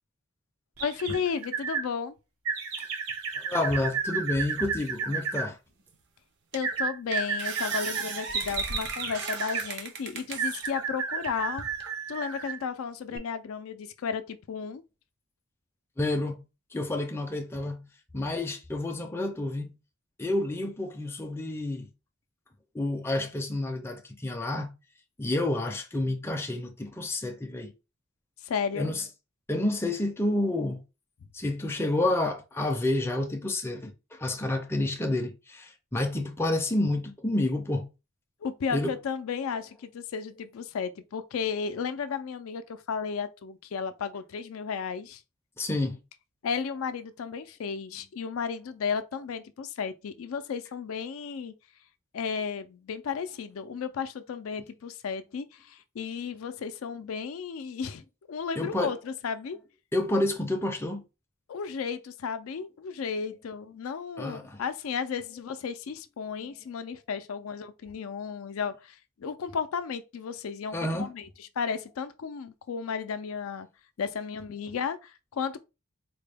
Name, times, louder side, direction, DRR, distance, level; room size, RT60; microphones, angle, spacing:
voice 1, 0.8-2.2 6.5-11.6 12.1-14.8 28.4-28.9 38.4-45.2 46.4-51.5 52.1-59.6 61.5-73.7 74.0-75.6, left 6 dB, 75° left, 0.4 m, -34 dB
sound 1, 0.8-1.9 2.4-5.5 6.6-9.7 10.4-12.6 13.1-13.2, right 5 dB, 85° right, 0.9 m, -32 dB
voice 2, 3.4-5.6 16.0-16.4 16.7-17.9 18.1-19.7 20.2-21.9 22.7-24.7 25.2-27.7 28.8-29.0 29.5-30.8 31.3-37.9 38.7-38.9 45.6-46.0 58.6-58.9 59.9-61.0 64.2-64.6 70.7-71.1, left 1 dB, 10° left, 0.5 m, -29 dB
sound 2, 5.9-6.0 6.5-6.8 7.1-10.7 11.2-11.9, right 5 dB, 55° right, 0.6 m, -38 dB
4.1 x 2.2 x 3.3 m
head